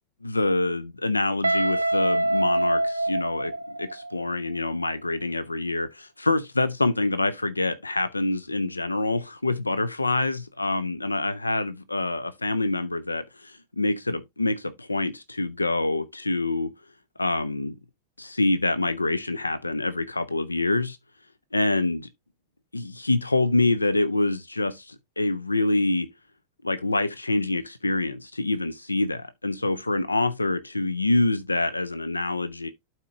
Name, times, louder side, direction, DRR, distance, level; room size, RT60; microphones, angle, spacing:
voice 1, 0.2-16.7 17.2-17.8 18.2-21.0 21.5-22.1 22.7-26.1 26.6-32.7, left 2 dB, 80° left, 0.5 m, -26 dB
Guitar, 1.4-4.3, right 1 dB, 80° right, 0.4 m, -25 dB
12.0 x 4.3 x 2.5 m
figure-of-eight pair, 90°, 0 cm